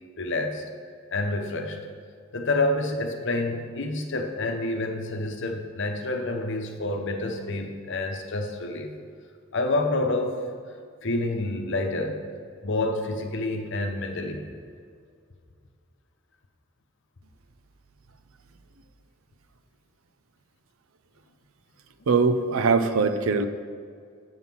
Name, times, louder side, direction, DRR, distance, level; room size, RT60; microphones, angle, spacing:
voice 1, 0.2-0.6 1.1-1.8 2.3-8.9 9.5-10.4 11.0-12.2 12.6-14.5, left 2 dB, 65° left, 4 dB, 0.9 m, -28 dB
voice 2, 22.1-23.5, right 4 dB, 85° right, 9 dB, 0.6 m, -21 dB
7.8 x 5.6 x 6.1 m, 2.2 s
head